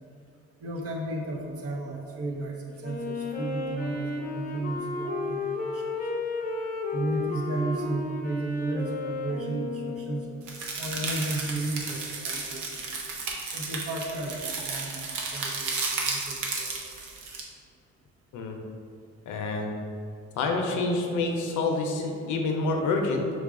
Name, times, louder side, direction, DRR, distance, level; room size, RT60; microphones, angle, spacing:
voice 1, 0.6-5.9 6.9-10.3 10.8-12.9 13.5-15.8 16.0-16.8, right 2 dB, 50° right, 0 dB, 0.7 m, -34 dB
Wind instrument woodwind instrument, 2.8-10.5, left 3 dB, 30° left, 0.5 m, -33 dB
sound 1, 10.5-17.4, right 4 dB, 85° right, 0.7 m, -33 dB
voice 2, 19.3-19.8 20.4-23.3, left 3 dB, 80° left, 2 dB, 0.6 m, -27 dB
5.0 x 2.3 x 3.7 m, 2.5 s
cardioid pair, 90°, 30 cm